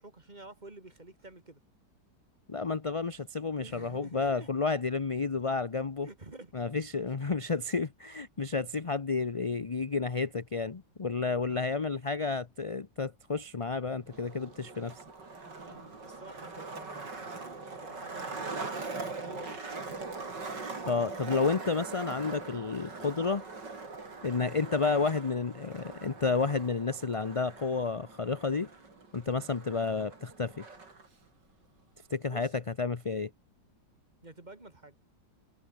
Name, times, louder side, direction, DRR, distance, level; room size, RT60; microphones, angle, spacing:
voice 1, 0.0-1.6 3.6-4.5 6.0-6.7 11.5-12.0 15.6-17.1 17.8-19.8 29.2-29.5 32.3-32.6 34.2-35.0, right 2 dB, 25° right, 2.6 m, -50 dB
voice 2, 2.5-6.1 6.5-15.0 20.9-23.4 24.2-28.7 29.1-30.6 32.1-33.3, left 4 dB, 30° left, 0.6 m, -31 dB
Skateboard, 14.1-31.1, right 3 dB, 90° right, 4.7 m, -42 dB
omnidirectional pair, 1.8 m